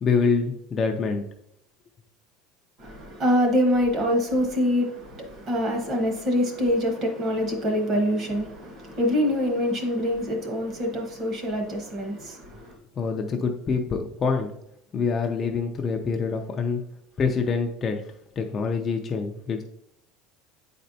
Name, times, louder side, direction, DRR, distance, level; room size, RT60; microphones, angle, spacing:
voice 1, 0.0-1.2 13.0-14.5 14.9-16.8 17.2-18.0 18.4-19.6, left 5 dB, 20° left, 0.4 m, -25 dB
voice 2, 2.8-12.7, equal, 30° right, 1.0 m, -25 dB
8.4 x 4.2 x 2.7 m
cardioid pair, 175°, 0 cm